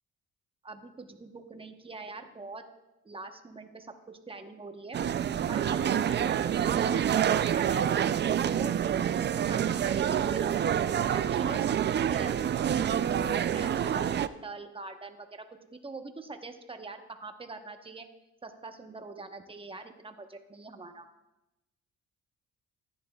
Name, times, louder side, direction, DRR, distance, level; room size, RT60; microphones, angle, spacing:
voice 1, 0.6-2.6 3.0-5.0 5.5-7.9 8.3-10.5 11.0-12.8 13.1-15.4 15.7-18.0 18.4-21.1, right 3 dB, 20° right, 6 dB, 1.0 m, -43 dB
sound 1, 4.9-14.3, right 9 dB, 35° right, 0.4 m, -27 dB
14.0 x 10.5 x 2.3 m, 0.96 s
cardioid pair, 90°, 30 cm